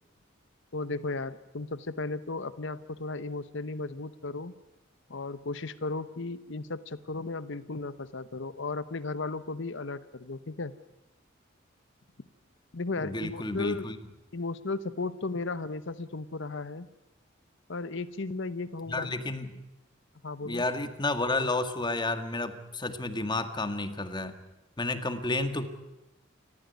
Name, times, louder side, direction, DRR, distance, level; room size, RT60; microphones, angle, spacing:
voice 1, 0.7-4.5 5.1-10.7 12.7-13.9 14.3-16.9 17.7-19.1 20.2-20.6, left 3 dB, 65° left, 14 dB, 1.0 m, -35 dB
voice 2, 13.0-14.0 18.9-19.5 20.4-24.4 24.8-25.7, left 2 dB, 25° left, 9 dB, 1.8 m, -31 dB
29.0 x 14.5 x 9.4 m, 0.95 s
head